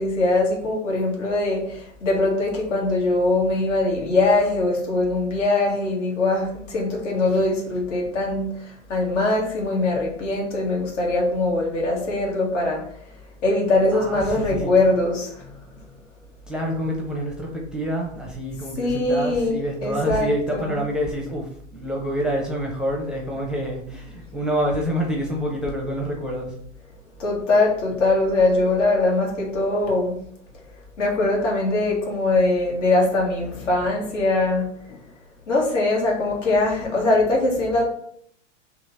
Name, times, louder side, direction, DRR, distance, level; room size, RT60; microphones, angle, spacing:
voice 1, 0.0-12.8 13.4-15.4 18.8-20.8 27.2-30.2 31.0-35.0 35.5-37.9, left 2 dB, 75° left, -2 dB, 1.8 m, -22 dB
voice 2, 13.9-14.7 16.5-26.5, equal, ahead, -3 dB, 0.6 m, -27 dB
3.7 x 2.9 x 4.1 m, 0.66 s
hypercardioid pair, 115°, 37 cm